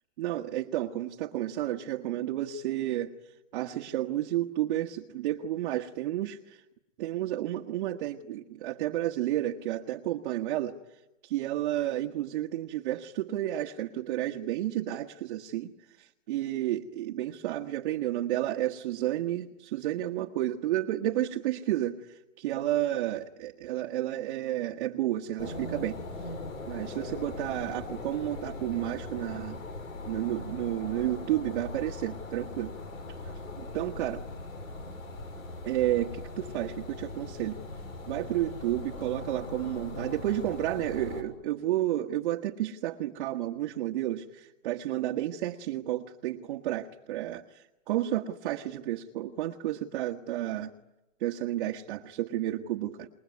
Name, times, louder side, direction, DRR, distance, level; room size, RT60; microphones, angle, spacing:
voice 1, 0.2-3.1 3.5-6.6 7.0-10.8 11.2-15.7 16.0-26.0 26.7-29.6 30.0-32.7 33.6-34.2 35.6-37.6 38.1-50.7 51.2-53.1, right 13 dB, 40° right, 2 dB, 1.4 m, -31 dB
sound 1, 25.4-41.2, left 2 dB, 80° left, 6.6 m, -40 dB
28.0 x 21.0 x 9.6 m, 0.98 s
hypercardioid pair, 160°, 40 cm